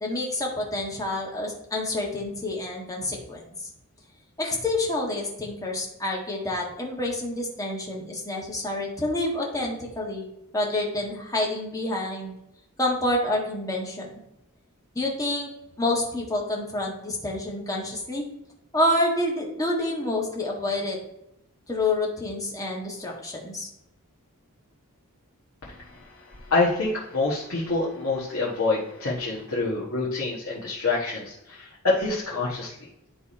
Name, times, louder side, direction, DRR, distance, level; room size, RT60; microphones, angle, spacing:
voice 1, 0.0-3.7 4.4-10.2 10.5-12.3 12.8-14.1 14.9-15.5 15.8-18.2 18.7-21.0 21.7-23.7, left 1 dB, 15° left, -2 dB, 1.6 m, -28 dB
voice 2, 25.6-32.8, left 3 dB, 65° left, -5 dB, 1.5 m, -27 dB
10.5 x 3.5 x 4.2 m, 0.84 s
head